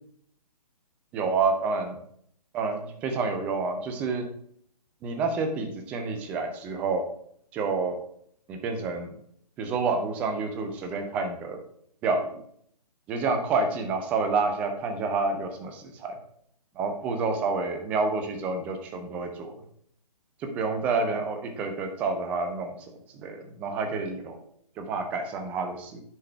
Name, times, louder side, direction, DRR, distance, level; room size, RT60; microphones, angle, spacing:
voice 1, 1.1-2.0 2.5-4.2 5.0-7.0 7.5-8.0 8.5-9.1 9.6-11.6 12.0-12.3 13.1-16.1 16.8-19.5 20.6-22.8 23.1-24.4 24.8-26.0, right 4 dB, 5° right, 5 dB, 0.3 m, -28 dB
6.7 x 3.8 x 4.4 m, 0.65 s
figure-of-eight pair, 135°, 21 cm